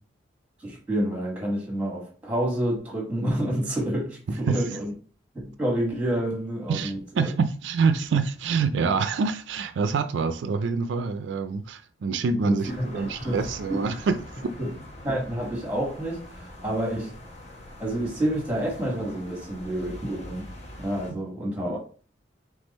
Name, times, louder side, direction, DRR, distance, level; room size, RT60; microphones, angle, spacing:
voice 1, 0.6-4.9 5.4-7.3 12.4-13.4 13.7-13.8 14.6-14.7 15.0-17.1 17.8-20.5 20.8-21.8, right 1 dB, 10° right, 1.3 m, -28 dB
voice 2, 6.7-14.2 21.1-21.2, right 5 dB, 70° right, 0.3 m, -26 dB
sound 1, 12.6-21.1, left 1 dB, 35° left, 0.9 m, -43 dB
3.6 x 3.2 x 4.0 m
head